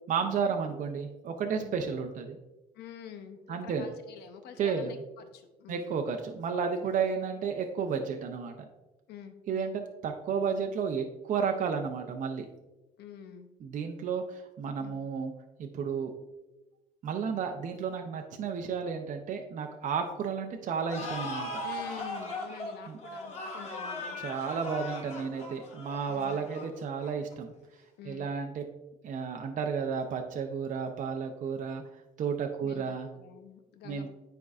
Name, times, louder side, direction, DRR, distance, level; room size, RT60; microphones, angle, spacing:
voice 1, 0.1-2.4 3.5-3.9 4.6-4.9 5.7-8.7 9.5-12.5 13.6-15.3 15.6-16.1 17.0-21.6 22.9-23.0 24.2-27.5 28.1-28.6 29.0-31.8 32.2-33.1 33.8-34.1, right 6 dB, 50° right, 4 dB, 0.6 m, -32 dB
voice 2, 2.7-6.0 6.8-7.0 9.1-9.8 13.0-13.5 14.8-15.0 21.6-24.5 26.1-26.4 28.0-28.3 32.6-32.8 33.1-34.1, left 8 dB, 75° left, 7 dB, 0.7 m, -47 dB
sound 1, 20.9-27.3, left 2 dB, 40° left, 1.4 m, -39 dB
9.5 x 4.5 x 2.4 m, 1.0 s
cardioid pair, 110°, 17 cm